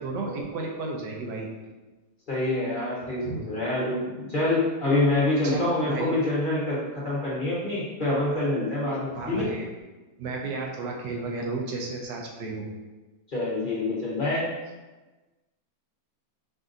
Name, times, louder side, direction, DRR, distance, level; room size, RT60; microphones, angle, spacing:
voice 1, 0.0-1.5 3.2-3.4 5.4-6.2 9.1-9.7 10.2-12.7, right 3 dB, 90° right, 0 dB, 1.4 m, -33 dB
voice 2, 2.3-9.5 13.3-14.5, left 2 dB, 35° left, -7 dB, 1.0 m, -26 dB
5.1 x 2.6 x 3.8 m, 1.2 s
omnidirectional pair, 1.8 m